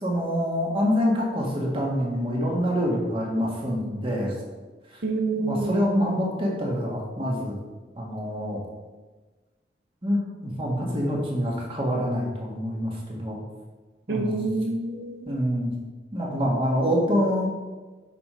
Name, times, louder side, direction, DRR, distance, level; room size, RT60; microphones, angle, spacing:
voice 1, 0.0-4.3 4.9-5.0 5.4-7.6 7.9-8.6 10.0-13.4 14.1-14.5 15.3-15.7 16.1-17.5, equal, 30° right, -2 dB, 1.7 m, -26 dB
voice 2, 5.0-5.9 14.1-15.4, right 2 dB, 75° right, 3 dB, 1.0 m, -27 dB
8.4 x 5.3 x 4.4 m, 1.3 s
head